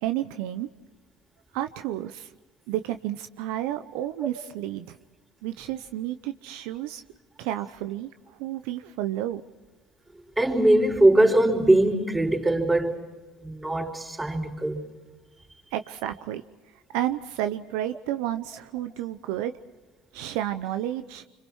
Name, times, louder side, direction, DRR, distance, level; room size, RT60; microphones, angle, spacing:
voice 1, 0.0-0.7 1.5-2.3 2.7-5.0 5.4-7.0 7.4-9.4 15.7-16.4 16.9-19.5 20.1-21.2, right 13 dB, 75° right, 0.8 m, -31 dB
voice 2, 10.4-13.0 13.4-14.8, right 1 dB, 15° right, 4.7 m, -21 dB
27.0 x 25.0 x 4.7 m
supercardioid pair, 80°, 0 cm